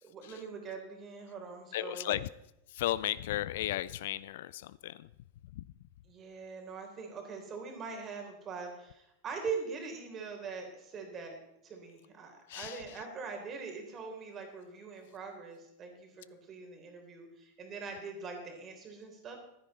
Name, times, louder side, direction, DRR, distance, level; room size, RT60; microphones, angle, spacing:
voice 1, 0.0-2.2 6.1-11.4 11.6-19.4, right 5 dB, 25° right, 3 dB, 3.6 m, -42 dB
voice 2, 1.7-2.3 2.7-5.1 5.5-5.6 12.5-12.8, left 14 dB, 55° left, 19 dB, 0.4 m, -35 dB
15.5 x 12.5 x 4.2 m, 0.84 s
figure-of-eight pair, 90°, 0 cm